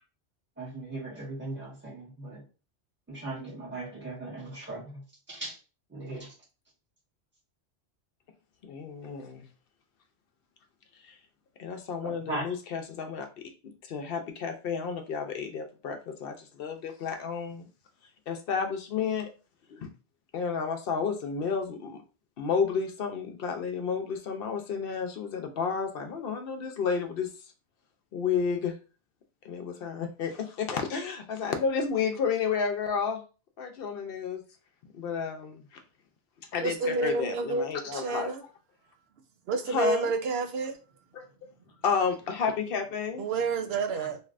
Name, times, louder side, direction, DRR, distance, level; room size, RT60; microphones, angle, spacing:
voice 1, 0.6-2.4 3.1-5.0 5.3-5.6 5.9-6.3 12.0-12.5, right 2 dB, 10° right, 1.6 m, -38 dB
voice 2, 8.6-9.5 11.0-11.2 11.6-13.3 13.9-17.7 18.3-19.3 19.7-19.9 20.3-22.0 22.4-27.3 28.1-28.7 29.4-33.2 33.6-34.4 34.8-35.8 36.5-38.3 39.7-40.1 41.1-41.2 41.8-43.2 44.0-44.1, left 6 dB, 60° left, 0.7 m, -31 dB
voice 3, 36.6-38.4 39.5-40.8 43.2-44.2, right 3 dB, 65° right, 0.8 m, -29 dB
3.1 x 2.6 x 2.4 m
omnidirectional pair, 1.2 m